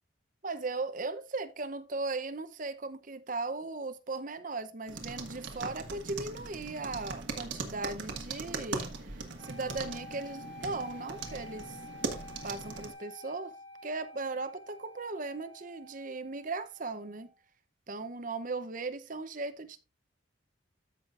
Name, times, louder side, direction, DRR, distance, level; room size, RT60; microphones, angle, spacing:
voice 1, 0.4-11.8 12.4-13.6 13.8-17.3 17.9-19.8, right 3 dB, 40° right, 0.7 m, -37 dB
sound 1, 4.9-12.9, right 3 dB, 65° right, 1.5 m, -40 dB
sound 2, 9.4-17.4, left 1 dB, 10° left, 2.4 m, -50 dB
14.0 x 5.7 x 2.5 m
head